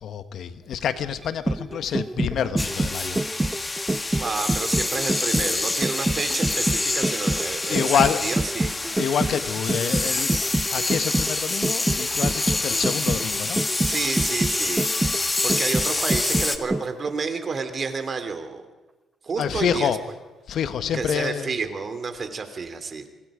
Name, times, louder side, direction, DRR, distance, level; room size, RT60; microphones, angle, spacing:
voice 1, 0.0-3.2 7.7-8.3 8.9-13.6 19.4-20.0 20.5-21.6, left 8 dB, 65° left, 11 dB, 1.4 m, -27 dB
sound 1, 1.2-17.1 17.4-17.5, right 2 dB, 15° right, 0.9 m, -27 dB
sound 2, 2.6-16.6, left 2 dB, 20° left, 2.1 m, -27 dB
voice 2, 4.2-8.7 13.8-14.9 15.4-18.6 19.2-19.9 20.9-23.0, right 4 dB, 40° right, 8 dB, 3.1 m, -30 dB
26.0 x 25.0 x 5.2 m, 1.2 s
cardioid pair, 90°, 0 cm